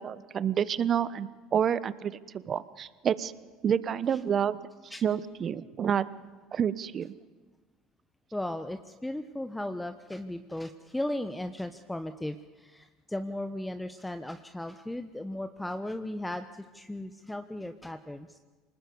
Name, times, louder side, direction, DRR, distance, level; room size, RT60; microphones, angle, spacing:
voice 1, 0.0-3.3 3.6-4.6 5.0-6.1 6.5-7.1, right 8 dB, 40° right, 17 dB, 1.1 m, -29 dB
voice 2, 8.3-18.4, left 1 dB, 5° left, 9 dB, 1.2 m, -36 dB
25.5 x 20.0 x 8.1 m, 1.3 s
hypercardioid pair, 70°, 0 cm